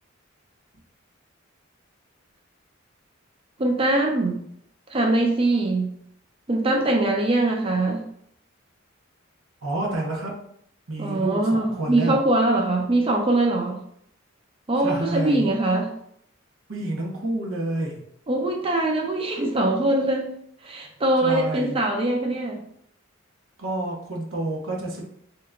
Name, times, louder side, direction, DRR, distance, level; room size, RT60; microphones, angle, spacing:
voice 1, 3.6-4.4 4.9-5.9 6.5-8.0 11.0-13.8 14.7-15.9 18.3-20.3 20.6-22.6, right 2 dB, 25° right, 1 dB, 0.5 m, -22 dB
voice 2, 9.6-10.4 10.9-12.2 14.8-15.5 16.7-18.0 21.2-21.8 23.6-25.0, right 1 dB, 85° right, -1 dB, 1.0 m, -29 dB
3.3 x 2.9 x 3.6 m, 0.69 s
head